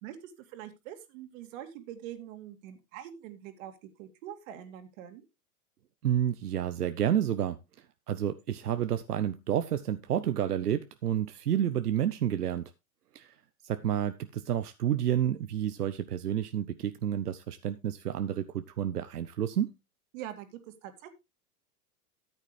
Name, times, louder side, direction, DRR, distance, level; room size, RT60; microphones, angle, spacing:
voice 1, 0.0-5.2 20.1-21.1, right 11 dB, 55° right, 2.5 m, -44 dB
voice 2, 6.0-7.6 8.1-12.7 13.1-13.3 13.6-19.7, right 10 dB, 90° right, 0.8 m, -30 dB
13.5 x 8.3 x 3.2 m
hypercardioid pair, 110°, 45 cm